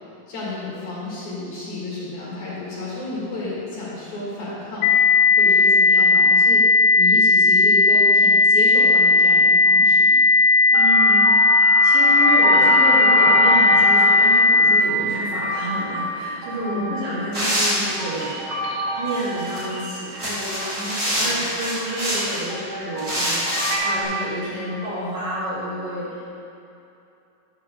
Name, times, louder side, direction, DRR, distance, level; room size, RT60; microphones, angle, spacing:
voice 1, 0.3-4.9 5.4-6.6 7.0-10.1 16.6-17.0 21.2-21.4, left 3 dB, 55° left, -8 dB, 3.0 m, -31 dB
sound 1, 4.8-14.8, left 3 dB, 85° left, 2.6 m, -15 dB
voice 2, 10.7-11.5 11.8-26.2, equal, 50° right, -10 dB, 3.5 m, -30 dB
sound 2, 10.7-21.0 21.2-24.0, right 1 dB, 85° right, 3.0 m, -28 dB
sound 3, 17.3-18.3 19.1-19.6 20.1-22.5 23.0-23.7, equal, 30° right, 1.0 m, -25 dB
11.0 x 4.7 x 6.7 m, 2.7 s
omnidirectional pair, 4.4 m